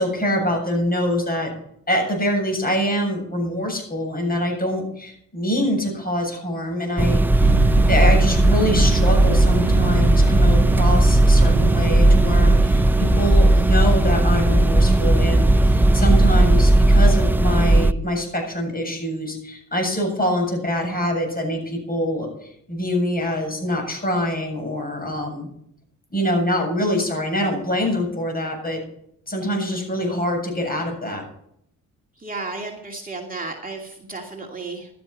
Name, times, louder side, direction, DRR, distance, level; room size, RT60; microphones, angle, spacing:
voice 1, 0.0-1.5 1.9-7.6 7.9-25.5 26.1-28.8 29.3-31.2, equal, 25° left, 2 dB, 7.6 m, -24 dB
sound 1, 7.0-17.9, right 1 dB, 5° right, 0.5 m, -16 dB
sound 2, 7.4-16.6, right 14 dB, 85° right, 0.6 m, -30 dB
voice 2, 32.2-34.9, right 3 dB, 25° right, 0 dB, 2.5 m, -33 dB
15.5 x 12.5 x 4.3 m, 0.72 s
cardioid pair, 90°, 35 cm